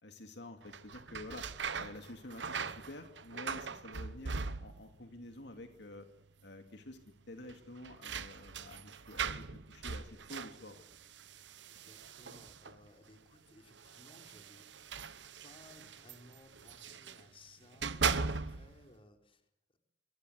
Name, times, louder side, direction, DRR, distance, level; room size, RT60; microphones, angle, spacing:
voice 1, 0.0-1.5 1.8-6.1 6.4-7.0 7.3-10.8, left 2 dB, 70° left, 6 dB, 2.4 m, -49 dB
sound 1, 0.6-5.0 5.3-6.0 6.3-6.4 7.5-12.9 13.7-17.2 17.6-18.8, right 5 dB, 70° right, 1.1 m, -40 dB
voice 2, 11.7-14.8 15.4-19.8, left 2 dB, 30° left, 5 dB, 4.3 m, -60 dB
26.0 x 25.5 x 8.1 m, 0.75 s
head